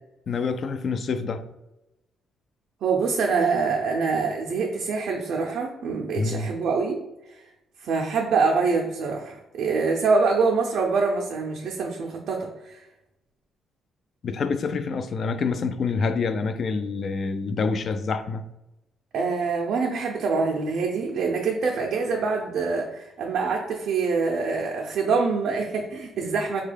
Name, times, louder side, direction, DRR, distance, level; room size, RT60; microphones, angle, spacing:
voice 1, 0.3-1.4 6.2-6.5 14.2-18.4, left 4 dB, 55° left, 10 dB, 0.3 m, -27 dB
voice 2, 2.8-6.9 7.3-7.4 7.8-12.9 19.1-26.6, right 4 dB, 70° right, 0 dB, 0.4 m, -25 dB
3.5 x 2.3 x 3.2 m, 0.92 s
cardioid pair, 90°, 0 cm